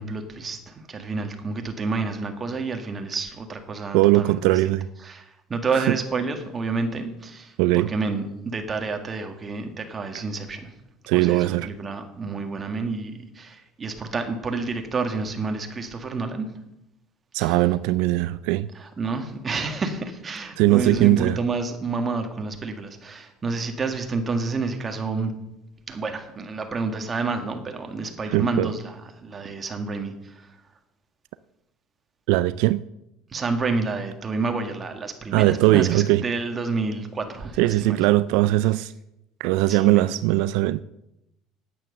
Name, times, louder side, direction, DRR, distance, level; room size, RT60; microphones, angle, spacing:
voice 1, 0.0-4.4 4.6-4.8 5.0-10.7 11.1-16.5 17.4-17.5 18.7-25.3 25.9-30.5 33.3-38.0 39.7-40.1, right 4 dB, 25° right, 1.8 m, -29 dB
voice 2, 3.9-4.9 5.7-5.9 7.6-7.9 10.1-10.2 11.1-11.7 17.3-18.7 20.6-21.4 28.3-28.7 32.3-32.8 35.3-36.2 37.6-38.9 39.4-40.8, right 17 dB, 75° right, 0.3 m, -20 dB
9.3 x 9.1 x 6.7 m
cardioid pair, 120°, 0 cm